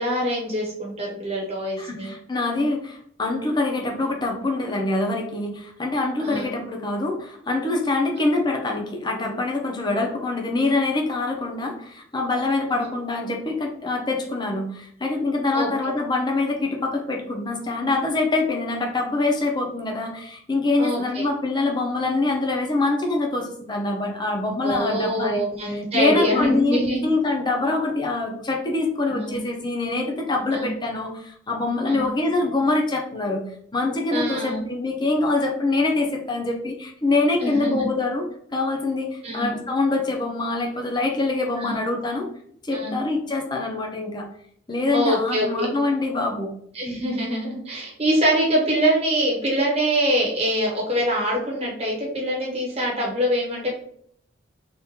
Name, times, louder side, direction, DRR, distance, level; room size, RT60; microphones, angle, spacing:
voice 1, 0.0-2.1 6.2-6.5 15.5-16.0 20.8-21.3 24.6-27.1 29.1-29.4 30.5-30.7 31.9-32.1 34.1-34.7 37.4-37.9 39.2-39.5 41.6-41.7 42.7-43.0 44.9-45.7 46.7-53.7, equal, 30° right, -3 dB, 1.2 m, -24 dB
voice 2, 1.8-33.4 33.7-42.3 42.6-44.3 44.7-46.5, left 2 dB, 25° left, 1 dB, 0.6 m, -25 dB
3.6 x 2.5 x 2.8 m, 0.65 s
head